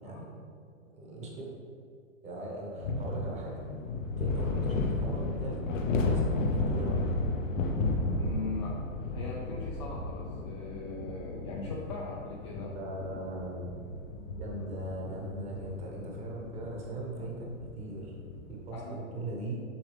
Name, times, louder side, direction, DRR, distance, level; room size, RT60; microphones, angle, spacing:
voice 1, 0.0-0.4 0.9-1.5 2.2-3.6 4.1-5.6 6.0-6.9 12.6-13.8 14.3-18.1 18.5-19.6, right 1 dB, 15° right, -2 dB, 1.0 m, -39 dB
sound 1, 2.8-18.6, left 3 dB, 80° left, 0.9 m, -33 dB
voice 2, 8.1-12.8 14.6-14.7 18.7-18.9, left 3 dB, 25° left, -3 dB, 0.4 m, -40 dB
7.1 x 4.9 x 3.4 m, 2.3 s
hypercardioid pair, 145°, 38 cm